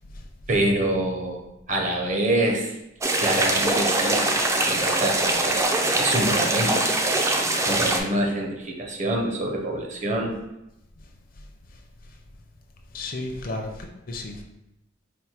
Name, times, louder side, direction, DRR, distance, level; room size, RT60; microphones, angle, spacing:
voice 1, 0.5-1.4 1.7-2.7 3.2-6.8 7.6-10.3, right 1 dB, 40° right, 1 dB, 0.7 m, -26 dB
sound 1, 3.0-8.0, right 2 dB, 15° right, 0.3 m, -23 dB
voice 2, 12.9-14.4, left 2 dB, 45° left, 3 dB, 0.5 m, -34 dB
4.4 x 2.1 x 4.3 m, 0.89 s
head